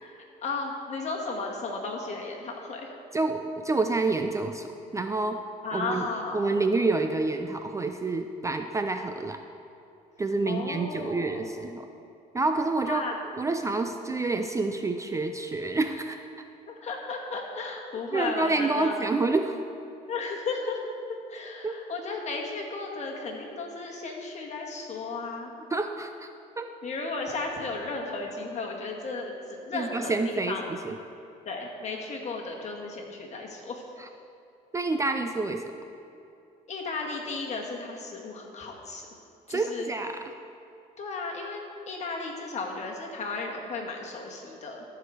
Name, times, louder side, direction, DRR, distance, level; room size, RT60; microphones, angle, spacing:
voice 1, 0.0-2.9 5.6-6.5 10.5-11.6 12.8-13.2 16.7-19.1 20.1-20.8 21.3-25.5 26.8-29.3 29.6-30.7 31.5-33.8 36.7-39.1 39.5-39.9 41.0-44.8, left 3 dB, 40° left, 0 dB, 1.8 m, -34 dB
voice 2, 3.1-5.4 5.7-9.4 10.2-11.9 12.3-13.0 13.4-16.2 18.1-19.6 21.6-21.8 25.7-26.3 26.6-26.7 29.7-31.0 34.0-34.1 34.7-35.7 39.5-40.3, right 3 dB, 20° right, 6 dB, 0.4 m, -28 dB
13.5 x 4.9 x 6.3 m, 2.7 s
cardioid pair, 110°, 17 cm